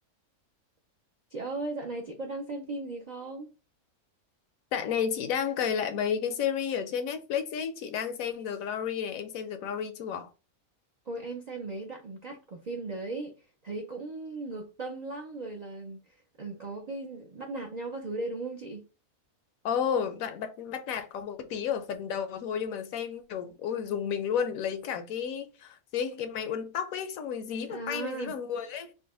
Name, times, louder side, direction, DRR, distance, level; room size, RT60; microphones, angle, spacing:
voice 1, 1.3-3.5 11.1-13.3 13.6-18.8 27.7-28.4, right 2 dB, 65° right, 0.4 m, -37 dB
voice 2, 4.7-10.3 19.6-28.9, left 7 dB, 75° left, 1.0 m, -32 dB
3.9 x 2.1 x 3.5 m
omnidirectional pair, 1.5 m